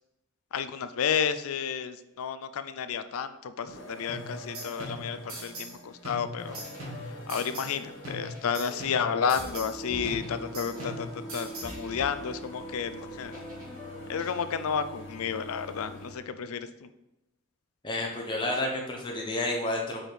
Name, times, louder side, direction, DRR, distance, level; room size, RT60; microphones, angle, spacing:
voice 1, 0.5-6.6 7.3-11.1 11.3-13.4 14.1-16.7, left 7 dB, 80° left, 12 dB, 0.4 m, -31 dB
sound 1, 3.7-16.2, equal, 60° left, 1.2 m, -45 dB
sound 2, 4.1-5.8 6.0-7.8 8.0-9.8 10.0-11.8, right 1 dB, 80° right, 1.9 m, -41 dB
sound 3, 6.4-14.7, left 2 dB, 40° right, 2.3 m, -47 dB
voice 2, 17.8-20.1, left 2 dB, 20° left, -1 dB, 0.8 m, -30 dB
5.0 x 4.5 x 4.5 m, 0.90 s
head